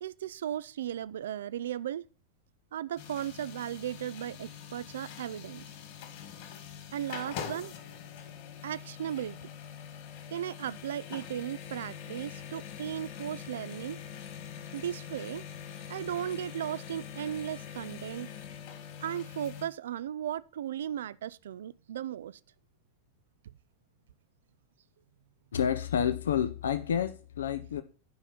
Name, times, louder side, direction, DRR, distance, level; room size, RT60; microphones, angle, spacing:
voice 1, 0.0-2.0 2.7-5.7 6.9-7.7 8.6-9.4 10.3-14.0 14.7-15.5 15.9-18.3 19.0-22.4 23.4-23.5, right 10 dB, 60° right, 0.3 m, -36 dB
sound 1, 3.0-19.7, left 8 dB, 50° left, 2.2 m, -44 dB
voice 2, 25.5-27.8, left 8 dB, 65° left, 0.6 m, -29 dB
9.4 x 5.6 x 5.8 m
figure-of-eight pair, 90°, 0 cm